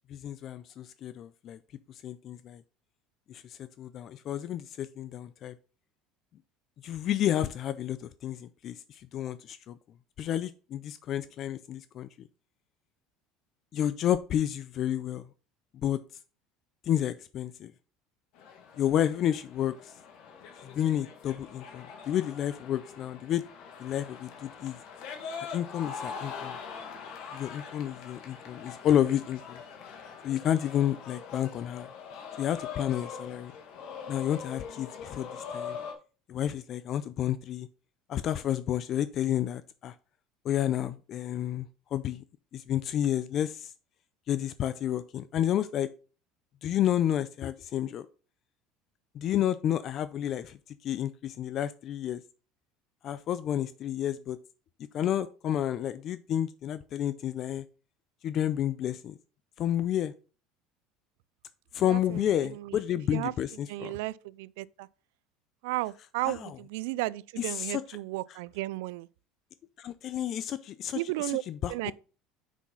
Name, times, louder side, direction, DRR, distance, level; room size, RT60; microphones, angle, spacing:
voice 1, 0.1-1.6 1.9-2.6 3.3-5.5 6.8-9.8 10.2-12.1 13.7-15.3 15.8-16.0 16.8-17.7 18.8-19.9 20.6-23.4 23.8-24.8 25.4-26.6 27.3-29.6 30.2-31.9 32.4-33.5 34.1-35.8 36.3-37.7 38.1-40.0 40.4-42.2 42.5-43.7 44.3-45.9 46.6-48.1 49.1-52.2 53.0-54.4 54.9-57.6 58.2-59.1 59.6-60.1 61.7-64.0 66.3-66.5 67.4-68.0 68.3-68.4 69.8-71.9, left 11 dB, 45° left, 0.4 m, -30 dB
sound 1, 18.3-35.9, left 6 dB, 65° left, 1.8 m, -43 dB
voice 2, 61.8-62.2 62.5-62.8 63.1-63.3 63.7-64.9 65.6-69.1 70.9-71.4 71.7-71.9, right 19 dB, 85° right, 0.3 m, -34 dB
6.1 x 5.8 x 3.9 m
cardioid pair, 130°, 0 cm